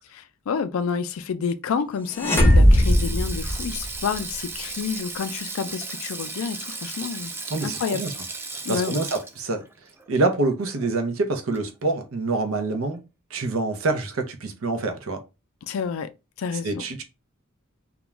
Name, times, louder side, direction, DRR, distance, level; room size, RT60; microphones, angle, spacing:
voice 1, 0.1-7.3 7.6-8.0 8.6-9.0 15.7-16.1 16.4-16.8, left 6 dB, 75° left, 0.4 m, -29 dB
sound 1, 2.1-4.1, equal, 10° left, 0.7 m, -18 dB
Sink (filling or washing), 2.6-11.1 11.3-11.6 12.7-13.0, right 3 dB, 10° right, 0.3 m, -36 dB
voice 2, 7.5-8.1 8.7-9.6 10.1-13.0 13.3-15.2 16.6-17.0, right 3 dB, 75° right, 0.6 m, -26 dB
2.4 x 2.2 x 3.0 m
head